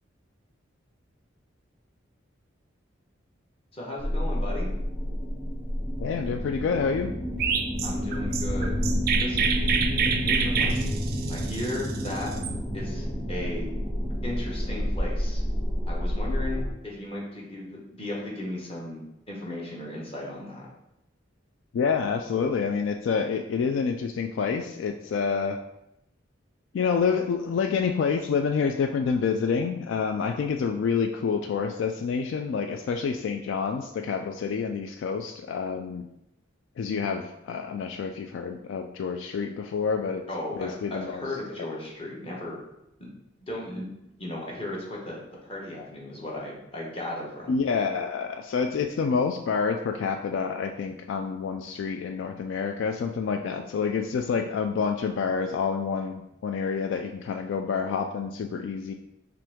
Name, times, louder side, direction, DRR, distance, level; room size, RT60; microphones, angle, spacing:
voice 1, 3.7-4.7 7.8-8.8 9.2-9.5 10.2-10.9 11.3-12.3 12.7-13.7 14.2-15.4 15.9-20.7 40.3-42.6 43.0-43.1 43.4-43.9 44.2-47.5, left 1 dB, 30° left, -3 dB, 1.1 m, -36 dB
sound 1, 4.0-16.7, equal, 10° left, 1.5 m, -29 dB
voice 2, 6.0-7.1 10.0-10.2 21.7-25.6 26.7-36.1 36.8-40.2 40.6-41.2 47.5-58.9, left 5 dB, 70° left, 5 dB, 0.3 m, -28 dB
Chirp tweet, 7.4-12.5, right 6 dB, 50° right, 0.4 m, -28 dB
5.7 x 2.6 x 3.5 m, 0.85 s
head